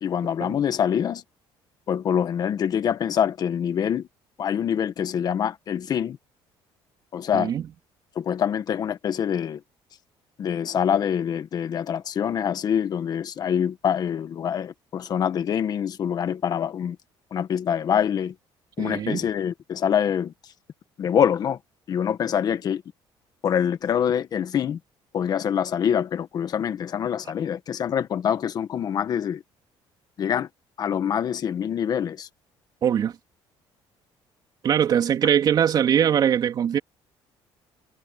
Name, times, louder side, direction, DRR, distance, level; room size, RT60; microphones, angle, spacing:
voice 1, 0.0-1.2 1.9-4.1 4.4-6.2 7.1-7.5 8.1-9.6 10.4-17.0 17.3-18.3 18.8-20.3 21.0-21.6 21.9-22.8 23.4-24.8 25.1-29.4 30.2-30.5 30.8-32.3, left 8 dB, 45° left, 1.4 m, -25 dB
voice 2, 18.8-19.2 32.8-33.1 34.6-36.8, right 9 dB, 45° right, 3.5 m, -21 dB
cardioid pair, 135°, 9 cm